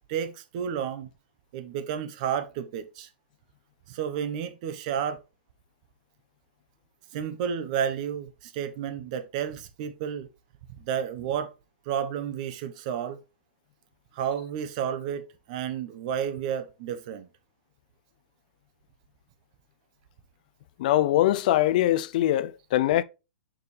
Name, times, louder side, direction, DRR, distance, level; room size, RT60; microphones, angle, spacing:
voice 1, 0.1-1.1 1.5-3.1 3.9-5.2 7.1-10.3 10.8-11.5 11.9-13.2 14.1-17.3, right 8 dB, 40° right, 0.9 m, -31 dB
voice 2, 20.8-23.0, left 14 dB, 45° left, 0.4 m, -22 dB
7.0 x 5.1 x 3.2 m
hypercardioid pair, 160°, 6 cm